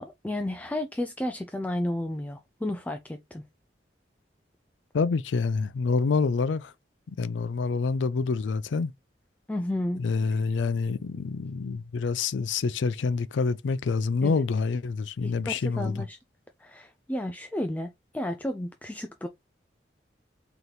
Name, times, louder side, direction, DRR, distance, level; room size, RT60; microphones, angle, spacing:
voice 1, 0.0-3.4 9.5-10.0 14.2-14.4 15.2-16.2 16.6-19.3, left 1 dB, 10° left, 0.3 m, -32 dB
voice 2, 4.9-6.7 7.2-8.9 10.0-16.1, left 4 dB, 85° left, 0.4 m, -27 dB
4.0 x 2.9 x 3.2 m
head